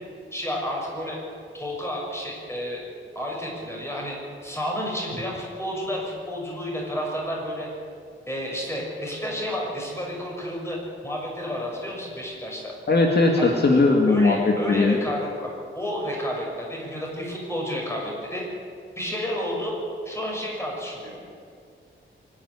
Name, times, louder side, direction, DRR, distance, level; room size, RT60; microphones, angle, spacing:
voice 1, 0.3-1.2 1.5-2.8 3.1-7.7 8.3-12.7 13.4-13.5 14.1-15.5 15.7-18.5 19.0-19.7 20.0-21.2, equal, 15° left, -2 dB, 6.5 m, -31 dB
voice 2, 12.9-15.0, left 3 dB, 55° left, 0 dB, 2.2 m, -19 dB
24.5 x 10.5 x 10.0 m, 2.2 s
wide cardioid pair, 120°, 20 cm